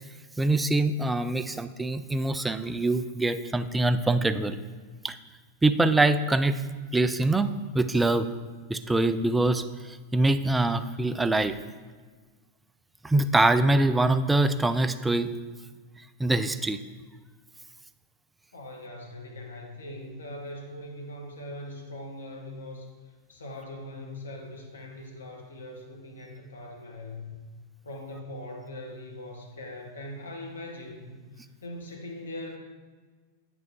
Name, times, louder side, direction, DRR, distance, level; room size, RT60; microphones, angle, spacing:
voice 1, 0.4-4.6 5.0-5.2 5.6-6.6 6.9-7.5 7.7-8.3 8.7-11.6 13.0-15.3 16.2-16.8, right 2 dB, 10° right, 11 dB, 0.3 m, -24 dB
voice 2, 18.5-22.9 23.3-27.3 27.8-32.6, left 1 dB, 70° left, 1 dB, 1.1 m, -41 dB
8.7 x 6.1 x 2.8 m, 1.4 s
figure-of-eight pair, 90°, 0 cm